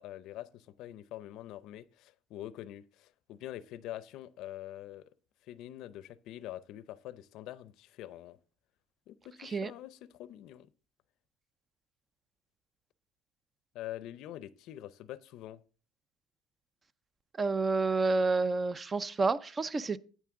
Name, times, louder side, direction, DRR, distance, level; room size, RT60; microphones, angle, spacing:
voice 1, 0.0-5.0 5.4-8.4 9.1-10.7 13.7-15.6, left 13 dB, 65° left, 0.5 m, -45 dB
voice 2, 17.4-20.0, right 3 dB, 25° right, 0.4 m, -29 dB
9.3 x 8.3 x 3.7 m
cardioid pair, 120°, 0 cm